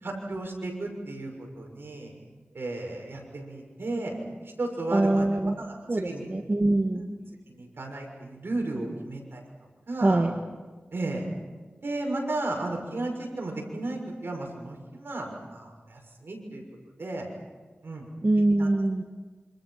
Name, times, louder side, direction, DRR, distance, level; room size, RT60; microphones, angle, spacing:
voice 1, 0.0-2.1 2.5-5.3 5.6-6.3 6.9-7.1 7.5-9.4 9.9-10.2 10.9-11.2 11.8-16.6 17.0-17.3 17.8-18.1 18.6-18.7, right 2 dB, 75° right, 1 dB, 6.4 m, -34 dB
voice 2, 4.9-5.5 5.9-7.0 10.0-10.3 18.2-19.0, right 2 dB, 40° right, 4 dB, 1.6 m, -23 dB
27.5 x 26.5 x 5.8 m, 1.4 s
wide cardioid pair, 60°, 4 cm